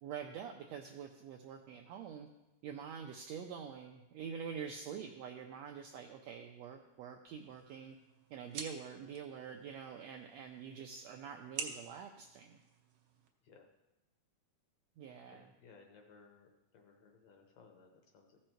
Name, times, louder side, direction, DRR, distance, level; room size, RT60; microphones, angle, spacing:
voice 1, 0.0-2.3 2.6-8.0 8.3-12.6 15.0-15.5, right 7 dB, 85° right, 3 dB, 1.5 m, -46 dB
sound 1, 7.3-13.3, right 6 dB, 70° right, 1.4 m, -50 dB
voice 2, 15.2-18.4, left 4 dB, 70° left, 3 dB, 1.9 m, -61 dB
14.5 x 5.4 x 4.4 m, 1.0 s
omnidirectional pair, 3.6 m